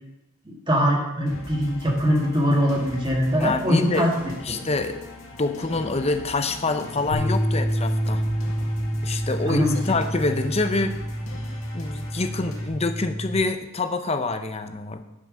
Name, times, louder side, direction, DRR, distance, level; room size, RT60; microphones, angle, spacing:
voice 1, 0.5-4.1 4.5-4.6 9.5-9.7, equal, 20° right, -1 dB, 1.9 m, -22 dB
sound 1, 1.3-12.7, left 1 dB, 65° left, 2.3 m, -41 dB
voice 2, 3.4-4.1 4.4-5.0 5.4-8.2 9.0-10.9 11.7-15.0, left 3 dB, 30° left, 8 dB, 0.7 m, -26 dB
sound 2, 7.1-13.4, equal, 85° left, 2.2 m, -28 dB
10.5 x 5.9 x 6.2 m, 0.96 s
head